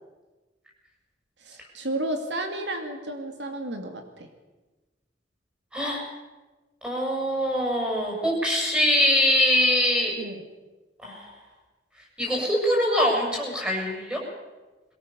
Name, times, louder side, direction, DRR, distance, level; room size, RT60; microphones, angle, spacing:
voice 1, 1.4-4.3 10.2-10.4, right 1 dB, 85° right, 5 dB, 2.6 m, -32 dB
voice 2, 5.7-6.0 6.8-10.1 11.0-11.3 12.2-14.2, left 1 dB, 5° right, -1 dB, 7.0 m, -23 dB
22.0 x 19.0 x 7.0 m, 1.2 s
head